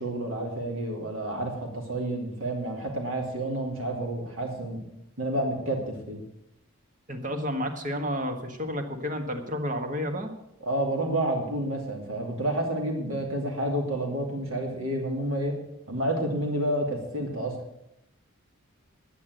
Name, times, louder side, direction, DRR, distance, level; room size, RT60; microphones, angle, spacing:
voice 1, 0.0-4.8 5.2-6.2 10.6-15.6 15.9-17.5, right 1 dB, 75° right, 2 dB, 2.6 m, -29 dB
voice 2, 7.1-10.3, equal, 40° right, 5 dB, 1.6 m, -31 dB
10.5 x 9.6 x 7.8 m, 0.84 s
head